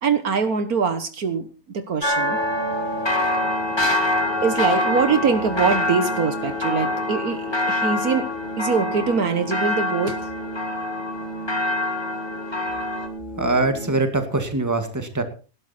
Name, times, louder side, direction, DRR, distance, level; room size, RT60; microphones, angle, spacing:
voice 1, 0.0-2.4 4.4-8.3 8.6-10.2, right 5 dB, 65° right, 10 dB, 1.7 m, -23 dB
sound 1, 2.0-14.0, equal, 30° left, 2.1 m, -31 dB
sound 2, 2.4-13.1, left 2 dB, 15° left, 2.5 m, -26 dB
voice 2, 13.4-15.2, right 2 dB, 10° right, 7 dB, 2.0 m, -23 dB
18.5 x 11.5 x 4.3 m, 0.35 s
omnidirectional pair, 1.7 m